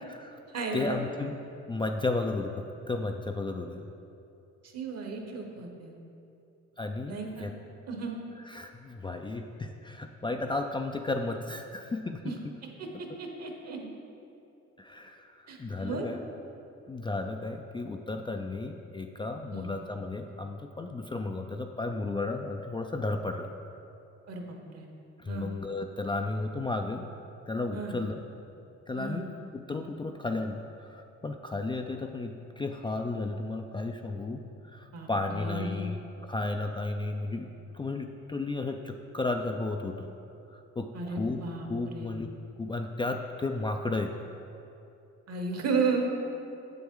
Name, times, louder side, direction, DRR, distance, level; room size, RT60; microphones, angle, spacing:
voice 1, 0.0-0.4 0.7-1.4 1.7-3.9 6.8-7.5 8.5-12.3 14.8-16.2 16.9-23.5 25.2-27.0 27.5-28.2 28.9-34.4 34.7-40.1 40.5-42.3 42.6-44.1, left 3 dB, 15° left, 4 dB, 0.3 m, -34 dB
voice 2, 0.5-1.0 4.6-5.9 7.1-7.5 7.9-8.1 12.2-12.4 12.6-13.9 15.5-16.1 19.5-19.7 24.3-24.4 24.7-24.9 25.3-25.5 27.7-28.0 28.9-29.2 34.9-35.9 40.9-41.7 41.9-42.1 45.3-46.1, right 4 dB, 55° right, 2 dB, 1.2 m, -34 dB
7.6 x 7.0 x 3.8 m, 2.7 s
cardioid pair, 90°, 30 cm